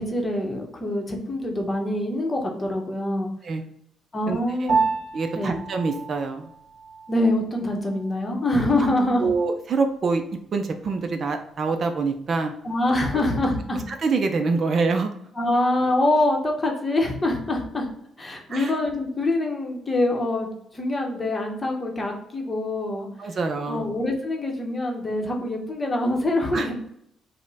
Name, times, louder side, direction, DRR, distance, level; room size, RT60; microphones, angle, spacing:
voice 1, 0.0-3.3 4.1-4.8 5.3-5.6 7.1-9.2 12.6-13.8 15.4-17.9 18.2-23.1 23.7-26.7, left 1 dB, 20° left, 1 dB, 0.9 m, -25 dB
voice 2, 4.3-4.7 5.1-6.5 9.2-10.2 10.5-12.5 13.9-15.1 18.5-18.7 23.2-23.9 26.5-26.7, right 4 dB, 45° right, 5 dB, 0.5 m, -25 dB
Piano, 4.7-14.3, right 4 dB, 65° right, 1.1 m, -33 dB
5.1 x 2.1 x 4.0 m, 0.72 s
cardioid pair, 130°, 0 cm